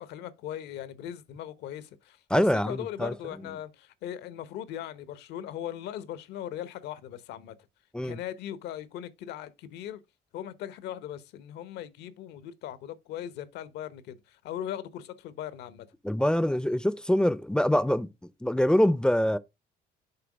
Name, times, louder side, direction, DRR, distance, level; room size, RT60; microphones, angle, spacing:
voice 1, 0.0-7.6 8.0-10.0 10.3-15.9, left 11 dB, 80° left, 0.9 m, -39 dB
voice 2, 2.3-3.1 7.9-8.2 16.0-18.1 18.4-19.4, equal, 5° left, 0.4 m, -24 dB
6.8 x 4.5 x 5.0 m
cardioid pair, 110°, 17 cm